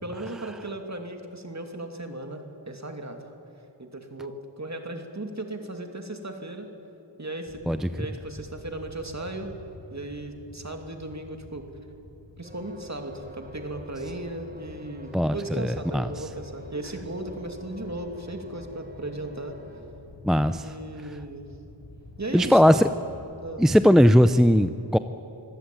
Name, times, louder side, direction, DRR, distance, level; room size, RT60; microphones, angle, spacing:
voice 1, 0.0-3.3 3.8-6.7 7.2-9.5 9.9-11.7 12.4-19.6 20.5-21.5 22.2-22.8 23.4-23.6, right 1 dB, 40° right, 4 dB, 2.7 m, -36 dB
sound 1, 7.5-23.8, left 1 dB, 70° left, 4.4 m, -48 dB
sound 2, 12.4-19.8, equal, 20° right, 3.4 m, -47 dB
voice 2, 15.1-16.1 20.2-20.7 22.3-22.9 23.6-25.0, equal, ahead, 11 dB, 0.6 m, -19 dB
25.5 x 16.5 x 9.1 m, 2.9 s
wide cardioid pair, 60°, 44 cm